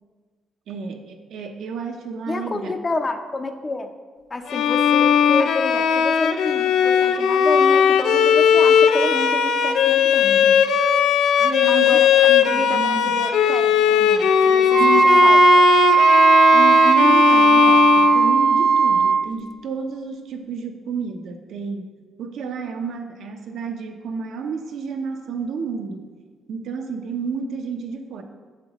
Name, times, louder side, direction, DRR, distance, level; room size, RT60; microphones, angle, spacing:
voice 1, 0.7-2.8 11.4-13.1 14.8-15.2 16.5-26.1 26.5-28.2, right 5 dB, 75° right, 4 dB, 0.7 m, -30 dB
voice 2, 2.3-3.9 4.3-10.6 11.7-14.8 15.2-15.4, left 2 dB, 30° left, 7 dB, 0.5 m, -29 dB
Bowed string instrument, 4.5-18.8, left 7 dB, 75° left, 0.4 m, -18 dB
Wind instrument woodwind instrument, 14.7-19.2, right 4 dB, 40° right, 0.3 m, -15 dB
7.7 x 7.0 x 3.0 m, 1.5 s
cardioid pair, 90°, 0 cm